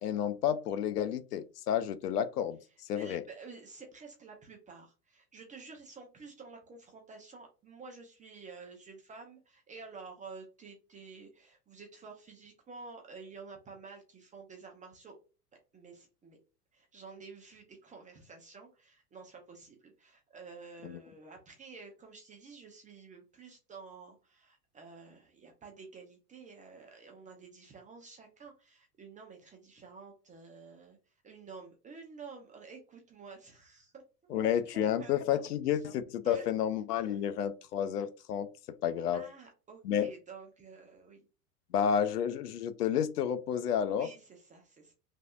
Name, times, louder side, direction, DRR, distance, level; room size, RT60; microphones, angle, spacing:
voice 1, 0.0-2.6 2.9-3.2 20.8-21.0 34.3-39.2 39.8-40.1 41.7-44.1, left 9 dB, 80° left, 0.5 m, -31 dB
voice 2, 2.7-15.2 15.7-16.4 16.7-35.8 36.2-36.5 37.0-37.3 39.1-41.3 41.9-42.2 43.8-44.9, right 4 dB, 15° right, 0.6 m, -51 dB
3.2 x 2.6 x 2.3 m
hypercardioid pair, 95°, 46 cm